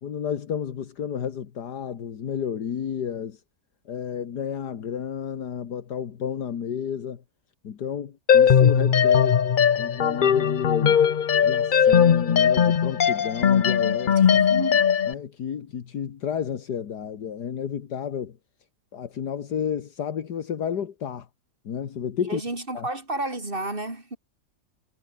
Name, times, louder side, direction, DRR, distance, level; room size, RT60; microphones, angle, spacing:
voice 1, 0.0-3.4 3.9-7.2 7.6-9.4 9.8-11.0 11.4-14.4 15.0-18.4 18.9-21.3 21.6-22.4 22.7-22.9, left 8 dB, 80° left, 2.0 m, -31 dB
sound 1, 8.3-15.1, left 8 dB, 50° left, 0.6 m, -19 dB
voice 2, 14.2-14.9 22.3-24.2, right 2 dB, 30° right, 4.5 m, -31 dB
omnidirectional pair, 1.7 m